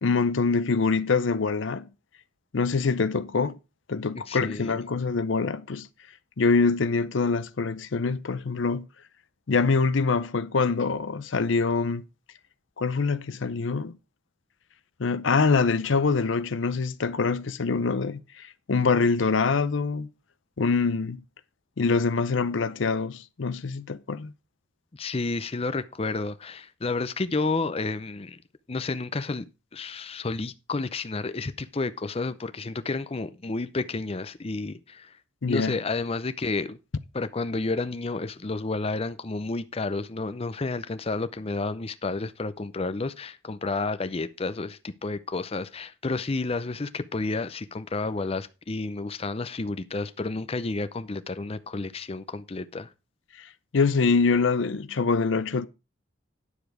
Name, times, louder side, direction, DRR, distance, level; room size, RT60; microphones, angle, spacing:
voice 1, 0.0-1.9 2.5-3.6 3.9-5.9 6.4-8.9 9.5-12.0 12.8-14.0 15.0-20.1 20.6-21.2 21.8-24.3 35.4-35.7 53.4-53.5 53.7-55.7, left 4 dB, 85° left, 0.6 m, -24 dB
voice 2, 4.1-4.7 24.9-28.4 28.7-35.2 35.5-36.8 37.1-52.9, left 3 dB, 30° left, 0.6 m, -31 dB
10.0 x 7.0 x 4.8 m
head